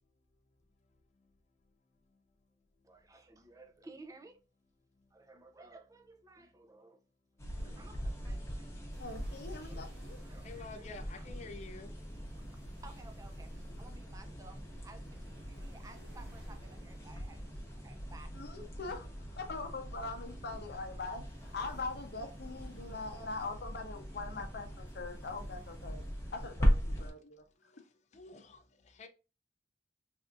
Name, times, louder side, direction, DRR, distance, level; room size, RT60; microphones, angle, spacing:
voice 1, 2.8-4.4 5.1-7.0 7.5-8.9 9.1-9.9 10.3-10.9 11.2-11.3 12.8-18.3, right 3 dB, 20° right, 0.4 m, -56 dB
sound 1, 7.4-27.1, equal, 15° left, 0.9 m, -39 dB
sound 2, 8.9-27.2, right 1 dB, 75° right, 1.1 m, -63 dB
voice 2, 9.0-10.2 18.3-26.0 26.3-27.7, left 3 dB, 60° left, 0.7 m, -42 dB
voice 3, 10.4-11.9 27.0-27.1 28.1-29.1, left 3 dB, 40° left, 0.4 m, -49 dB
3.4 x 2.6 x 2.5 m
head